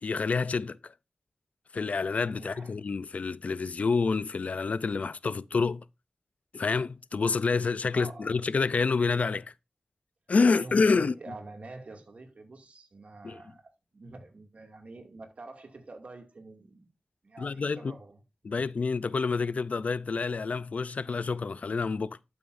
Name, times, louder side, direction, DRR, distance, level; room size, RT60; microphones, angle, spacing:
voice 1, 0.0-0.9 1.7-5.8 6.5-9.5 10.3-11.1 13.2-13.4 17.4-17.9 18.4-22.2, left 4 dB, 70° left, 0.4 m, -28 dB
voice 2, 2.4-2.7 7.9-8.4 10.5-16.9 17.2-18.2, right 3 dB, 60° right, 2.3 m, -47 dB
12.5 x 7.1 x 2.6 m
wide cardioid pair, 80°, 3 cm